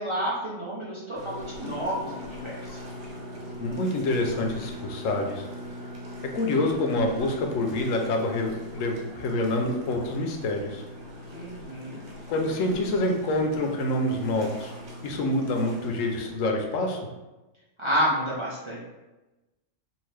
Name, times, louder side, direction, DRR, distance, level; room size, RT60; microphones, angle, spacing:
voice 1, 0.0-2.8 11.3-12.0 17.8-18.8, equal, 40° right, -8 dB, 0.4 m, -30 dB
sound 1, 1.1-16.3, equal, 60° right, 0.9 m, -41 dB
voice 2, 3.6-5.5 6.3-10.8 12.3-14.7 15.0-17.0, left 2 dB, 90° left, 2 dB, 1.0 m, -27 dB
2.8 x 2.5 x 3.2 m, 1.1 s
omnidirectional pair, 1.3 m